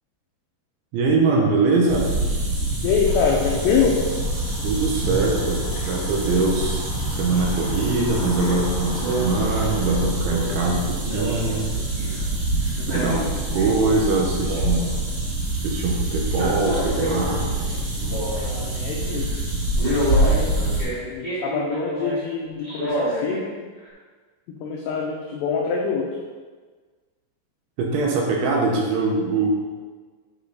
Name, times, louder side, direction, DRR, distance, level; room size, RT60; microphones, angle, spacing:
voice 1, 0.9-2.1 4.6-11.7 12.0-12.1 12.9-15.0 15.6-17.5 27.8-29.6, right 3 dB, 75° right, -1 dB, 3.2 m, -23 dB
sound 1, 1.9-20.8, right 2 dB, 60° right, 1.7 m, -26 dB
voice 2, 2.8-4.0 12.8-13.2 18.5-19.3 20.0-20.6 21.1-23.5 24.5-26.1, left 6 dB, 85° left, -1 dB, 2.4 m, -25 dB
sound 2, 3.1-10.1, left 3 dB, 70° left, 2.9 m, -39 dB
Male speech man speaking, 7.5-7.8 8.1-8.6 9.0-12.2 12.7-14.0 14.3-15.1 16.3-18.7 19.1-19.3 19.8-22.2 22.6-23.4 23.9-24.0, equal, 40° right, 0.8 m, -29 dB
8.4 x 5.9 x 4.0 m, 1.5 s
omnidirectional pair, 5.9 m